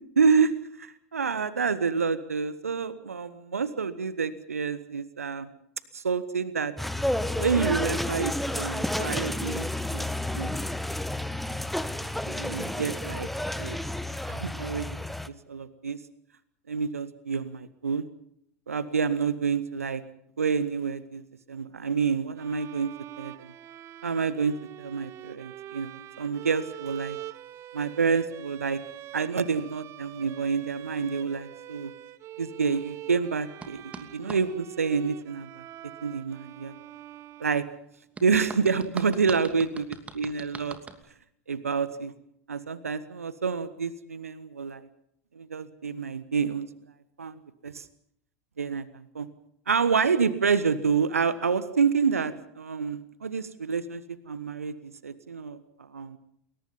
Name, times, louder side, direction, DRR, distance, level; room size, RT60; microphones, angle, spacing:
voice 1, 0.2-5.5 5.9-6.7 7.4-9.7 9.9-10.1 10.3-10.5 11.3-11.4 12.2-13.3 13.6-13.8 14.3-14.9 15.5-16.0 16.7-18.1 18.7-20.0 20.4-21.2 21.5-22.9 23.2-23.5 24.0-27.2 27.7-28.8 29.1-31.9 32.4-35.6 36.0-36.7 37.4-37.7 38.2-39.8 40.2-40.8 41.5-42.1 42.5-44.9 45.3-46.7 47.2-47.9 48.6-49.3 49.7-56.2, right 5 dB, 75° right, 15 dB, 1.3 m, -28 dB
sound 1, 6.8-15.3, left 1 dB, ahead, 1.2 m, -31 dB
sound 2, 22.3-38.0, right 14 dB, 35° right, 1.1 m, -44 dB
sound 3, 33.6-34.4 38.2-41.0, right 4 dB, 15° right, 2.8 m, -41 dB
29.5 x 22.0 x 5.6 m, 0.71 s
figure-of-eight pair, 85°, 8 cm